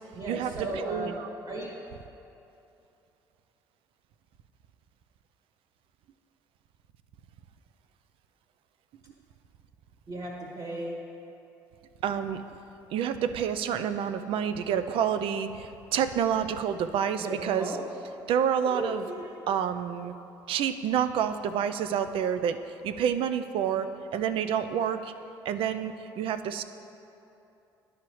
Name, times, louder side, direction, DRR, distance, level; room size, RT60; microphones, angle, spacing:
voice 1, 0.1-1.7 10.1-11.0 17.1-17.8 18.6-19.4, right 1 dB, 45° right, -3 dB, 1.5 m, -36 dB
voice 2, 0.8-1.1 12.0-12.4 12.9-17.7 18.3-19.0 19.5-20.1 20.5-25.1 25.4-26.6, right 8 dB, 60° right, 10 dB, 0.4 m, -28 dB
11.5 x 5.0 x 3.0 m, 2.9 s
hypercardioid pair, 55°, 10 cm